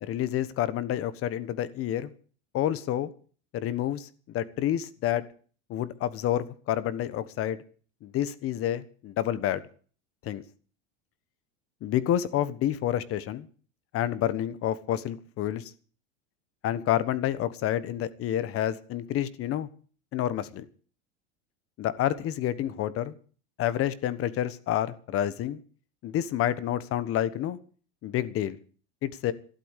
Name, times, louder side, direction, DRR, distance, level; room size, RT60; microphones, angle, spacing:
voice 1, 0.1-2.1 2.5-3.1 3.5-5.2 5.7-7.6 8.0-9.6 10.2-10.4 11.8-13.5 13.9-15.7 16.6-19.7 20.1-20.7 21.8-23.1 23.6-25.6 26.0-27.6 28.0-28.6 29.0-29.3, left 11 dB, 40° left, 16 dB, 1.3 m, -29 dB
13.0 x 11.5 x 8.3 m, 0.44 s
supercardioid pair, 135°, 36 cm